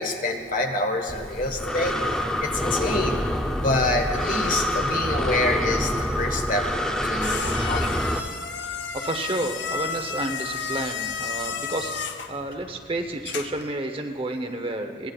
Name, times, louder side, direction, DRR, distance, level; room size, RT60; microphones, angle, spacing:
voice 1, 0.0-3.2 3.6-6.7 7.0-8.0, left 2 dB, 45° left, 4 dB, 1.4 m, -27 dB
Breathing, 1.1-8.2, equal, 5° left, 0.6 m, -26 dB
sound 1, 6.6-13.7, left 5 dB, 70° left, 0.8 m, -33 dB
voice 2, 8.6-15.1, right 2 dB, 30° right, 5 dB, 0.9 m, -31 dB
23.0 x 19.0 x 2.4 m, 2.1 s
head